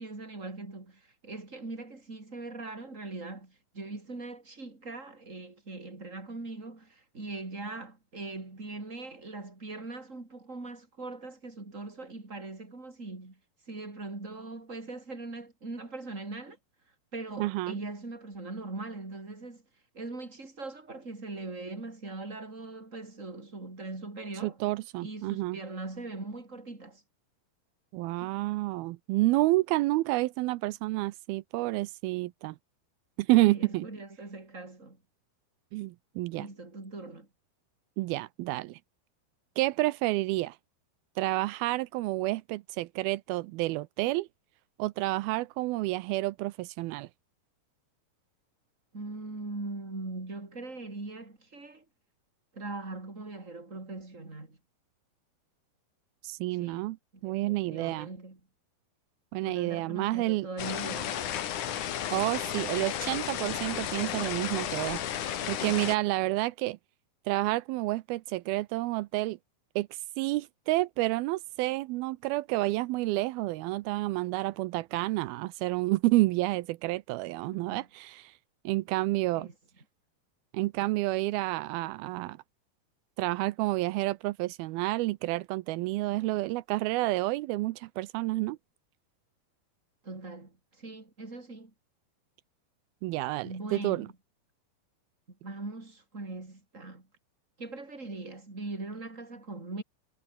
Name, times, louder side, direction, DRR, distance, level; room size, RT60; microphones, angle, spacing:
voice 1, 0.0-13.4 13.7-16.6 17.1-19.6 19.9-24.6 25.0-27.0 33.5-35.0 36.3-37.3 48.9-51.8 52.5-54.6 56.5-58.4 59.4-61.3 77.7-77.9 79.3-79.5 90.0-91.7 93.4-94.1 95.3-97.1 97.6-99.8, right 3 dB, 20° right, 5.0 m, -41 dB
voice 2, 17.4-17.8 24.4-25.6 27.9-32.6 33.2-33.9 35.7-36.5 38.0-38.8 39.6-40.6 41.2-44.3 44.8-47.1 56.2-57.0 57.2-58.1 59.3-60.5 62.1-66.8 67.3-69.4 69.8-69.9 70.2-78.3 78.6-79.5 80.5-82.4 83.2-88.6 93.0-94.1, right 19 dB, 85° right, 2.6 m, -29 dB
sound 1, 60.6-66.0, left 10 dB, 60° left, 2.9 m, -33 dB
omnidirectional pair, 4.3 m